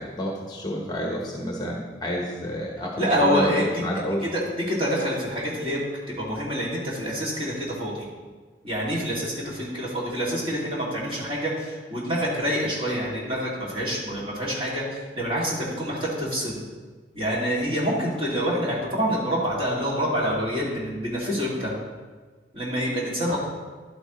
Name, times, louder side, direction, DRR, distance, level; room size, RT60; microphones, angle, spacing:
voice 1, 0.0-4.3 23.3-23.4, equal, 25° left, -1 dB, 1.0 m, -29 dB
voice 2, 3.0-3.8 4.3-5.9 6.2-8.1 8.6-16.6 17.1-21.7 22.5-23.4, equal, 30° right, -5 dB, 2.3 m, -26 dB
11.0 x 8.7 x 3.1 m, 1.4 s
head